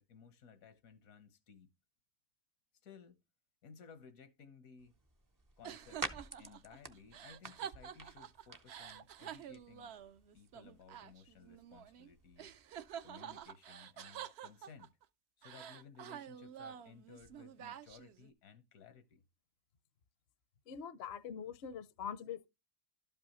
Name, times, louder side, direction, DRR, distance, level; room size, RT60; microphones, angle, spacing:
voice 1, 0.0-1.7 2.8-3.2 3.6-4.9 5.6-6.0 6.4-10.0 10.3-12.5 13.0-15.0 15.4-19.2, left 6 dB, 80° left, 1.4 m, -58 dB
sound 1, 4.8-13.4, right 3 dB, 30° right, 0.3 m, -51 dB
sound 2, 5.6-12.1 12.4-15.0 15.4-18.3, right 9 dB, 60° right, 0.7 m, -49 dB
voice 2, 20.7-22.5, left 7 dB, 60° left, 0.8 m, -43 dB
12.0 x 5.5 x 3.0 m
omnidirectional pair, 1.4 m